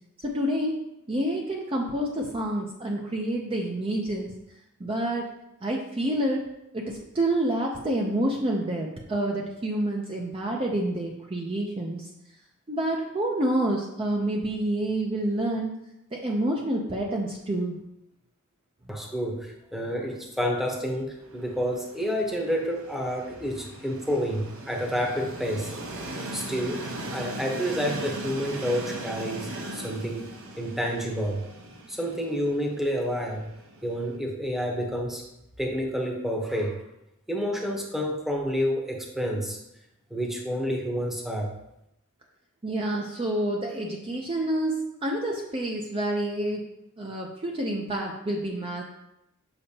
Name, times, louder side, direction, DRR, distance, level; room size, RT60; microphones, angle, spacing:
voice 1, 0.2-0.7 1.1-4.3 4.8-5.3 5.6-6.5 6.7-12.1 12.7-15.7 16.1-17.8 42.6-46.7 47.0-48.8, right 1 dB, 25° right, -1 dB, 0.6 m, -28 dB
voice 2, 18.9-25.7 26.3-26.8 27.1-30.3 30.6-31.4 31.9-33.5 33.8-35.2 35.6-36.8 37.3-39.6 40.1-41.5, equal, ahead, 0 dB, 0.9 m, -29 dB
Train, 21.2-34.2, right 1 dB, 70° right, 0.9 m, -39 dB
6.9 x 5.5 x 2.8 m, 0.85 s
head